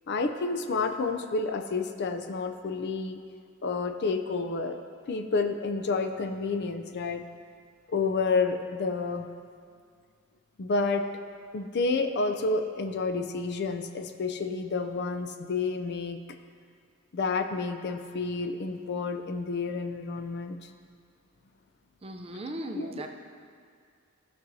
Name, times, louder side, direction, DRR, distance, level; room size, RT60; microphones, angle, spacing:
voice 1, 0.1-3.2 3.6-4.8 5.1-7.2 7.9-9.3 10.6-11.1 11.5-16.2 17.1-20.6 22.7-23.0, left 4 dB, 50° left, 7 dB, 0.4 m, -29 dB
voice 2, 22.0-23.1, right 1 dB, 25° right, 3 dB, 0.5 m, -37 dB
15.0 x 6.1 x 2.7 m, 2.1 s
head